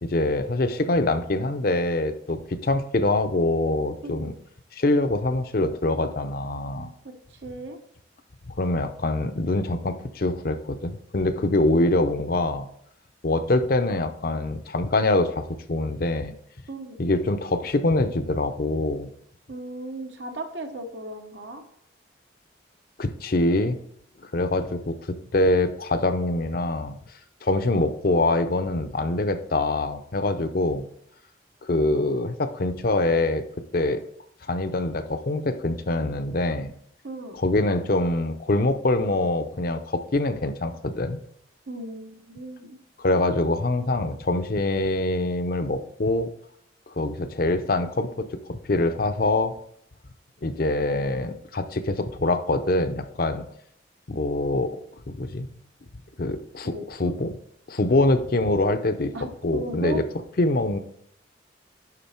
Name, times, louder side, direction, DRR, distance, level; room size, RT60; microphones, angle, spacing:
voice 1, 0.0-4.3 4.7-6.9 8.5-12.7 13.2-16.3 17.0-19.1 23.0-23.8 24.2-27.0 27.4-30.8 31.6-33.4 33.7-34.0 34.5-36.7 37.3-41.2 43.0-46.3 47.0-49.5 50.4-53.4 54.1-54.7 55.1-55.5 56.2-56.7 57.0-57.3 57.7-59.1 59.4-60.0 60.4-60.8, left 2 dB, 50° left, 9 dB, 0.6 m, -24 dB
voice 2, 4.0-4.4 7.0-7.8 16.7-17.0 19.5-21.6 37.0-37.4 41.7-42.8 56.7-57.1 59.1-60.0, right 1 dB, 70° right, 5 dB, 1.1 m, -36 dB
11.0 x 4.1 x 4.4 m, 0.70 s
head